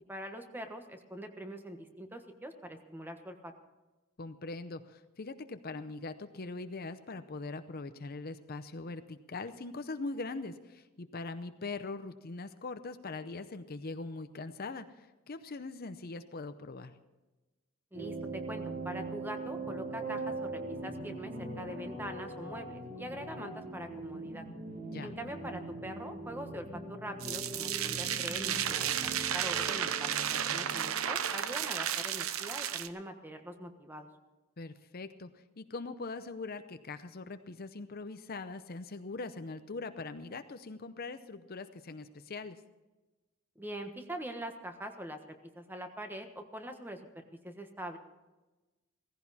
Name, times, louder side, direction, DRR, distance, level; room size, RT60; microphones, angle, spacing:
voice 1, 0.1-3.5 17.9-24.4 25.0-34.1 43.6-45.2 45.5-48.0, right 1 dB, 10° right, 6 dB, 1.3 m, -43 dB
voice 2, 4.2-16.9 24.9-25.1 34.6-42.6, left 3 dB, 45° left, 10 dB, 0.7 m, -42 dB
sound 1, 17.9-31.0, right 2 dB, 45° right, 3.3 m, -41 dB
sound 2, 27.2-32.9, right 9 dB, 85° right, 0.8 m, -33 dB
16.5 x 15.5 x 4.2 m, 1.1 s
head